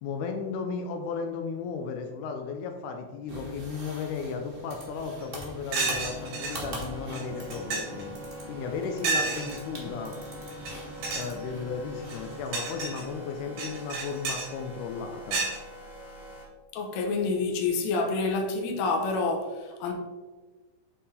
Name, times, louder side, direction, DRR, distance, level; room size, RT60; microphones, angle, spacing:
voice 1, 0.0-8.1 8.4-10.2 11.1-15.5, left 5 dB, 90° left, 1.7 m, -35 dB
sound 1, 3.3-12.4, equal, 50° right, 0.8 m, -43 dB
sound 2, 5.2-5.3 5.7-6.6 7.1-7.2 7.5-8.0 9.0-9.6 10.5-10.7 11.0-11.3 12.0-13.0 13.6-14.5 15.3-15.6, right 4 dB, 90° right, 4.2 m, -30 dB
sound 3, 5.8-16.5, equal, 30° left, 1.0 m, -44 dB
voice 2, 16.7-19.9, left 3 dB, 70° left, 1.8 m, -28 dB
8.6 x 3.6 x 4.2 m
omnidirectional pair, 4.3 m